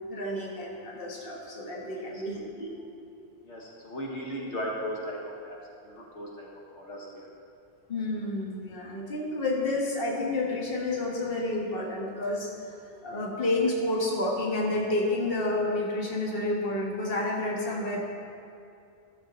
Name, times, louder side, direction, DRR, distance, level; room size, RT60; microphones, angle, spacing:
voice 1, 0.1-2.7 7.9-18.0, left 2 dB, 55° left, -2 dB, 1.5 m, -30 dB
voice 2, 3.4-7.3, equal, 85° left, -2 dB, 1.4 m, -37 dB
13.0 x 6.8 x 3.9 m, 2.5 s
omnidirectional pair, 1.2 m